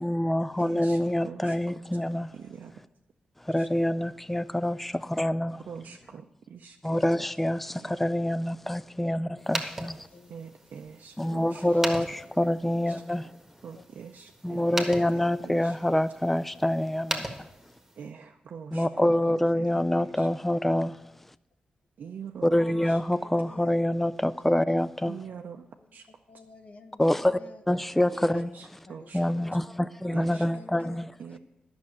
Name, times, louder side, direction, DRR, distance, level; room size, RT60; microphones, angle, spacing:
voice 1, 0.0-2.3 3.4-5.6 6.8-10.1 11.2-13.3 14.4-17.5 18.7-21.0 22.4-25.3 27.0-27.4 27.7-28.5 29.1-31.1, left 1 dB, 5° left, 0.3 m, -26 dB
voice 2, 0.6-1.0 1.2-1.6 2.3-2.7 3.6-3.7 5.7-7.0 7.8-8.0 10.3-11.6 12.9-13.0 13.6-14.8 15.4-15.7 18.0-20.3 22.0-22.5 22.9-23.0 25.1-26.1 28.3-29.2 30.1-30.4 31.2-31.4, right 7 dB, 75° right, 0.6 m, -44 dB
sound 1, 9.4-18.1, right 1 dB, 10° right, 1.5 m, -39 dB
voice 3, 10.0-10.4 11.2-12.5 13.7-13.9 14.8-15.9 18.0-18.1 18.9-20.2 23.2-23.8 24.1-24.2 24.5-24.7 25.7-27.6 28.1-28.5 28.8-29.6 30.3-31.0 31.3-31.4, left 3 dB, 50° left, 0.9 m, -51 dB
10.5 x 6.2 x 8.5 m
cardioid pair, 90°, 3 cm